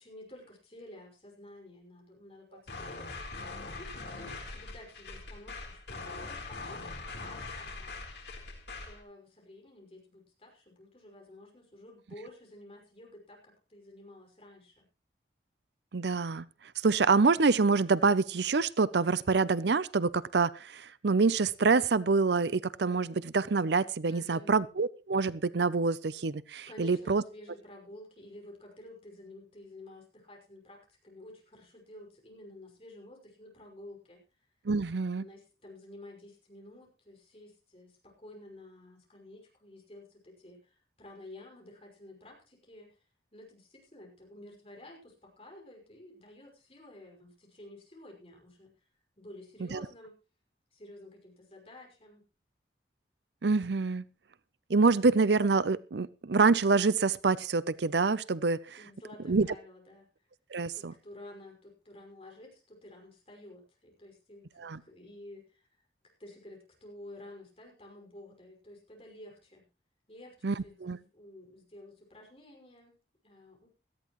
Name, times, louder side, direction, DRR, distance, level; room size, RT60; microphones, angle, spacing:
voice 1, 0.0-3.3 3.7-7.9 8.8-14.8 24.1-24.5 26.7-34.2 35.2-43.0 43.3-48.7 49.2-50.1 50.7-52.2 58.8-60.1 60.7-65.7 66.2-69.6 70.1-73.0 73.2-73.7, left 1 dB, 30° left, 0 dB, 5.7 m, -51 dB
sound 1, 2.7-9.0, left 3 dB, 70° left, 3.8 m, -42 dB
voice 2, 15.9-16.5 16.8-27.2 34.7-35.2 49.7-49.8 53.4-54.1 54.7-58.8 59.3-59.5 60.5-60.9 64.6-64.8 70.4-71.0, right 4 dB, 75° right, 18 dB, 0.6 m, -26 dB
17.5 x 13.5 x 3.1 m, 0.31 s
head